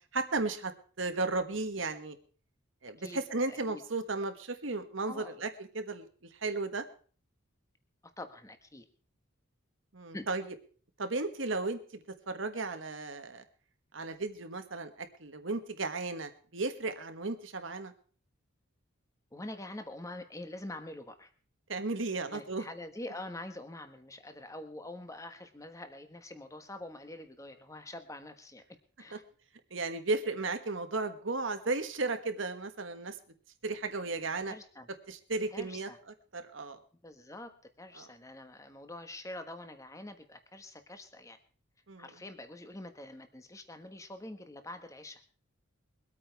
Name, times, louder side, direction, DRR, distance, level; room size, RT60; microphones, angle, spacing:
voice 1, 0.1-2.2 2.8-6.0 6.4-6.8 9.9-10.4 11.0-11.8 12.3-13.4 13.9-17.9 21.7-22.6 29.1-29.2 29.7-33.2 33.6-34.5 35.1-35.9 36.3-36.8 38.0-38.1 41.9-42.1, right 3 dB, 65° right, 8 dB, 1.5 m, -34 dB
voice 2, 3.0-3.8 5.1-5.4 8.2-8.8 10.1-10.3 19.3-21.3 22.3-28.6 29.0-29.2 34.5-34.9 35.5-36.0 37.0-37.5 37.8-41.4 42.0-45.2, left 1 dB, 15° left, 8 dB, 1.4 m, -45 dB
22.5 x 8.8 x 4.7 m, 0.41 s
head